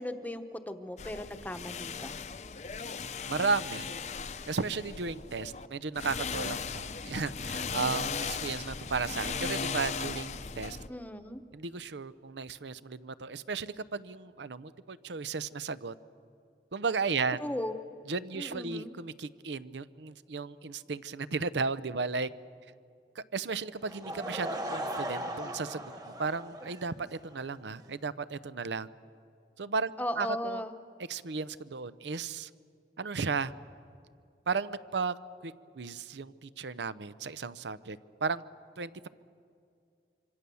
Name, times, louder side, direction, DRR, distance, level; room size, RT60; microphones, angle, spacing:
voice 1, 0.0-2.2 10.9-11.4 17.4-17.7 18.3-18.9 30.0-30.7, left 1 dB, 10° left, 8 dB, 0.9 m, -37 dB
sound 1, 1.0-5.7 5.9-10.9, left 5 dB, 40° left, 0.7 m, -37 dB
voice 2, 3.3-3.9 4.5-10.8 11.5-15.9 16.7-17.4 18.1-22.3 23.2-28.9 29.6-30.6 31.1-32.5 33.0-33.5 34.5-35.1 35.4-38.4 38.8-39.1, right 4 dB, 85° right, 15 dB, 0.7 m, -34 dB
Laughter / Crowd, 23.8-27.4, right 1 dB, 20° right, 1.4 m, -38 dB
26.0 x 25.0 x 7.0 m, 2.3 s
head